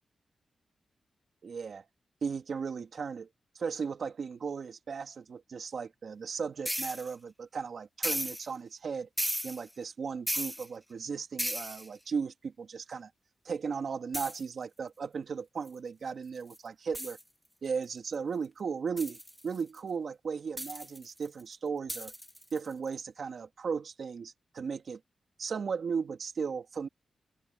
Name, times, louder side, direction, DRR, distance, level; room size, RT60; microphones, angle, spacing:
voice 1, 1.4-1.8 2.2-3.3 3.5-9.1 9.4-13.1 13.4-17.2 17.6-22.1 22.5-25.0 25.4-26.9, right 5 dB, 65° right, 2.3 m, -36 dB
sound 1, 6.7-7.1 8.0-8.5 9.2-9.7 10.3-10.7 11.4-11.9 14.1-14.4 15.7-15.8 16.5-16.6 16.9-17.2 19.0-19.8 20.6-21.4 21.9-22.7, equal, ahead, 2.1 m, -35 dB
open air
wide cardioid pair, 110°, 0 cm